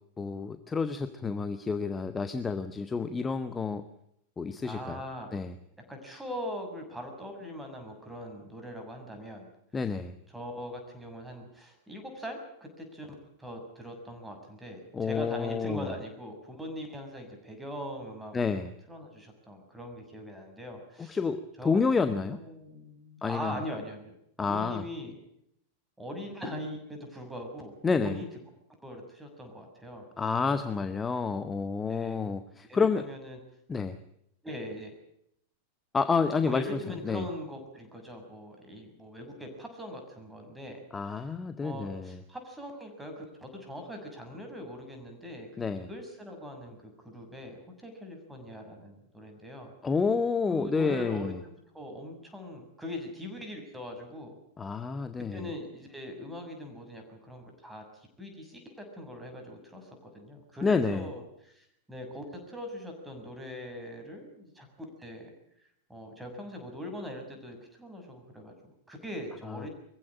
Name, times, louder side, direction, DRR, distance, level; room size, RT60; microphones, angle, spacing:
voice 1, 0.2-3.8 4.4-5.0 5.3-5.5 9.7-10.1 14.9-15.9 18.3-18.7 21.1-22.4 23.2-23.6 24.4-24.8 27.8-28.2 30.2-33.1 33.7-34.0 35.9-36.6 37.0-37.2 40.9-42.2 45.6-45.9 49.8-51.4 54.6-55.5 60.6-61.1, left 5 dB, 15° left, 10 dB, 1.2 m, -29 dB
voice 2, 4.6-5.3 5.9-9.5 10.3-18.6 18.9-21.2 21.6-25.1 26.0-27.7 28.0-28.3 28.8-30.6 31.9-32.3 32.7-33.4 34.4-34.9 36.4-40.8 41.1-41.3 41.6-49.7 50.5-54.4 55.3-65.3 65.9-69.7, equal, 5° right, 3 dB, 6.6 m, -41 dB
23.0 x 15.5 x 8.8 m, 0.76 s
figure-of-eight pair, 90°, 0 cm